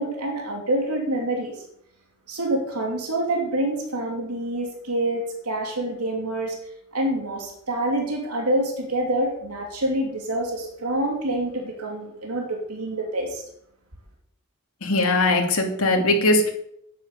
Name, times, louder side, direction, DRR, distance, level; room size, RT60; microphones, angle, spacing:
voice 1, 0.0-1.6 2.3-6.6 6.9-13.4, right 1 dB, 85° right, 0 dB, 3.0 m, -26 dB
voice 2, 14.8-16.5, left 2 dB, 65° left, 1 dB, 2.7 m, -20 dB
10.5 x 9.8 x 6.8 m, 0.73 s
head